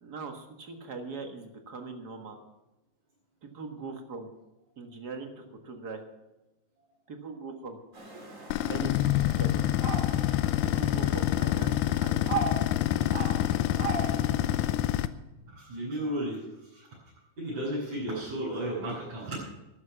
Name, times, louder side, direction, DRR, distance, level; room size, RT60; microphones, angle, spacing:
voice 1, 0.0-2.4 3.4-4.3 4.8-6.0 7.1-7.8 8.6-9.5 10.6-12.3, right 4 dB, 40° right, 5 dB, 1.5 m, -41 dB
sound 1, 7.9-14.7, right 4 dB, 25° right, 2.9 m, -38 dB
sound 2, 8.5-15.1, left 13 dB, 80° left, 2.1 m, -27 dB
voice 2, 15.5-16.9 17.4-19.4, right 1 dB, 60° right, -8 dB, 7.3 m, -34 dB
13.5 x 11.5 x 5.8 m, 1.0 s
omnidirectional pair, 3.6 m